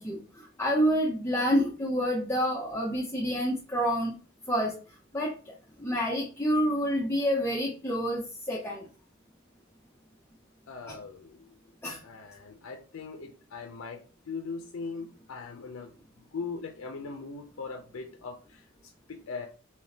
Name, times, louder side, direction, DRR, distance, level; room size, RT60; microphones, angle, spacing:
voice 1, 0.0-4.1 4.5-4.7 5.1-5.3 5.8-8.8 10.9-11.0 11.8-12.0, equal, 10° left, -4 dB, 0.6 m, -28 dB
voice 2, 10.7-11.4 12.0-14.0 14.3-15.9 16.3-18.6 19.1-19.5, left 4 dB, 85° left, 3 dB, 0.5 m, -40 dB
3.4 x 2.8 x 2.8 m, 0.36 s
head